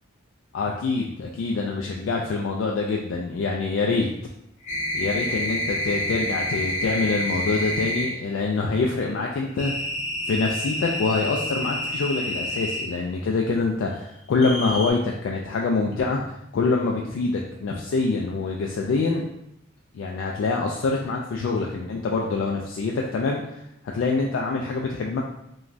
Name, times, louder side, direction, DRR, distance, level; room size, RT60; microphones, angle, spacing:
voice 1, 0.5-4.1 4.9-9.7 10.3-19.3 19.9-23.6 23.9-25.2, left 3 dB, 75° left, 0 dB, 0.3 m, -25 dB
sound 1, 4.6-8.1 9.6-12.9 14.4-14.9, equal, 35° left, 1.0 m, -28 dB
3.1 x 2.3 x 2.5 m, 0.79 s
head